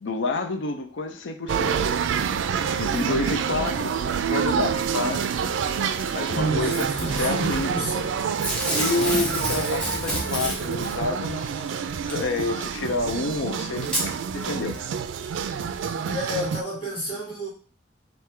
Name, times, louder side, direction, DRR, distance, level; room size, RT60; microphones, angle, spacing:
voice 1, 0.0-1.8 2.8-4.0 4.2-5.3 6.1-7.7 8.7-14.8, left 3 dB, 80° left, 5 dB, 0.6 m, -29 dB
sound 1, 1.5-16.6, right 7 dB, 85° right, 0.3 m, -27 dB
voice 2, 6.3-8.2 16.0-17.5, right 1 dB, 30° left, -7 dB, 2.1 m, -30 dB
Packing tape duct tape / Tearing, 6.7-7.2 8.4-10.9 12.1-12.2 13.1-13.2 13.8-14.1 14.7-14.8, equal, 5° left, 1.1 m, -28 dB
3.6 x 2.6 x 4.3 m, 0.38 s
head